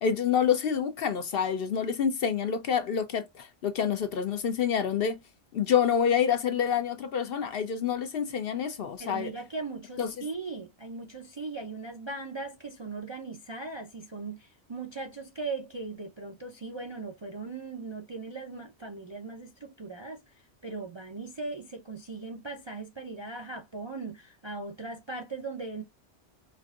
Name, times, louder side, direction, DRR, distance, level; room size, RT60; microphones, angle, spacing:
voice 1, 0.0-5.2 5.5-9.3 10.0-10.1, left 7 dB, 60° left, 0.7 m, -27 dB
voice 2, 9.0-20.2 20.6-25.8, right 3 dB, 40° right, 0.4 m, -39 dB
4.5 x 2.5 x 2.3 m
omnidirectional pair, 1.2 m